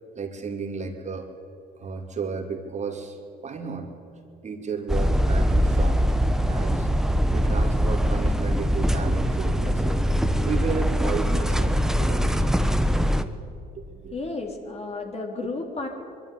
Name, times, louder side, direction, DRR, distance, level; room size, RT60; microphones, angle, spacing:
voice 1, 0.1-1.3 1.8-3.9 4.4-6.0 6.5-6.9 7.3-10.0 10.4-12.4 13.0-13.3 13.7-14.1 15.4-15.5, right 5 dB, 35° right, 2 dB, 2.7 m, -33 dB
sound 1, 4.9-13.2, equal, ahead, 1.1 m, -22 dB
voice 2, 14.1-15.9, left 3 dB, 35° left, 2 dB, 3.7 m, -32 dB
22.5 x 12.0 x 9.8 m, 2.6 s
supercardioid pair, 80°, 19 cm